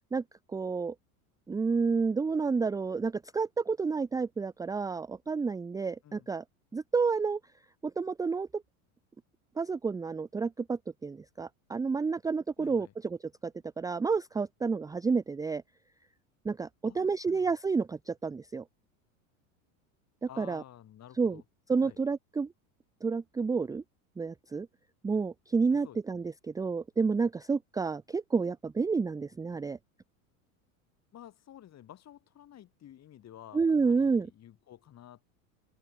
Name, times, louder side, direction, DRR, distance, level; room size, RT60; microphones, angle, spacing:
voice 1, 0.5-0.9 1.5-6.4 6.7-7.4 7.8-8.6 9.6-12.9 13.4-13.5 13.8-15.6 16.4-18.6 20.4-20.6 21.2-21.4 21.7-22.5 23.0-23.8 24.2-24.7 25.0-29.8 33.5-34.3, right 4 dB, 10° right, 0.5 m, -30 dB
voice 2, 6.0-6.3 12.6-12.9 16.8-17.5 20.3-21.4 21.8-22.0 25.8-26.0 31.1-35.2, left 11 dB, 40° left, 6.0 m, -52 dB
supercardioid pair, 105°, 42 cm